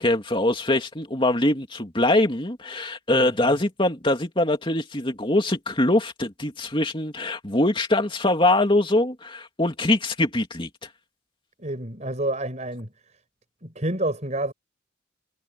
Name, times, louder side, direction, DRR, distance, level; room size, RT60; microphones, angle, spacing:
voice 1, 0.0-10.7, left 1 dB, 25° left, 2.7 m, -23 dB
voice 2, 3.1-3.6 11.6-12.9 13.6-14.5, right 1 dB, 35° right, 5.7 m, -29 dB
head